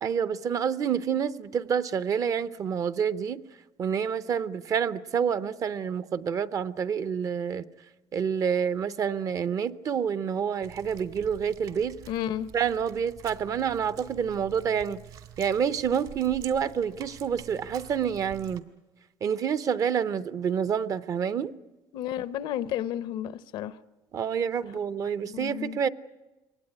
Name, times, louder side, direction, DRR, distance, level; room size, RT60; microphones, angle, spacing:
voice 1, 0.0-3.4 3.8-7.6 8.1-11.9 12.5-15.0 15.4-18.6 19.2-21.5 24.1-25.9, right 7 dB, 40° right, 15 dB, 0.7 m, -28 dB
sound 1, 10.6-18.6, right 9 dB, 65° right, 2.4 m, -47 dB
voice 2, 12.1-12.5 21.9-23.7 25.2-25.8, left 11 dB, 75° left, 15 dB, 0.8 m, -32 dB
23.0 x 19.0 x 9.8 m, 1.1 s
cardioid pair, 125°, 8 cm